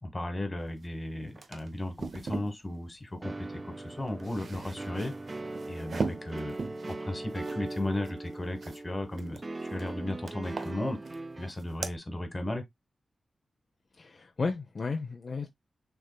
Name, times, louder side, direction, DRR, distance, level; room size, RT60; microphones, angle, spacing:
voice 1, 0.0-5.1 5.7-6.6 6.8-12.6, left 1 dB, 25° left, 1.5 m, -35 dB
sound 1, 0.8-0.9 1.2-2.5 3.9-8.8 9.1-9.9 10.3-11.2 11.5-12.0, right 4 dB, 60° right, 0.7 m, -39 dB
sound 2, 3.2-11.5, right 2 dB, 30° right, 0.4 m, -40 dB
voice 2, 13.9-15.5, left 4 dB, 45° left, 0.7 m, -33 dB
6.5 x 3.6 x 2.3 m
wide cardioid pair, 90°, 0 cm